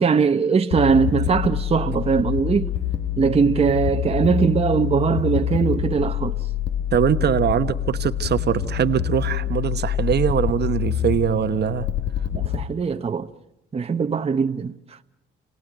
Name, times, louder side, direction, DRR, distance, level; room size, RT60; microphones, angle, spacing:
voice 1, 0.0-2.7 3.2-6.4 12.3-13.3 13.7-15.0, right 5 dB, 30° right, 0.9 m, -21 dB
sound 1, 0.7-12.6, left 10 dB, 65° left, 1.8 m, -26 dB
voice 2, 6.9-11.9, right 9 dB, 55° right, 1.1 m, -22 dB
29.5 x 18.0 x 9.1 m
cardioid pair, 90°, 20 cm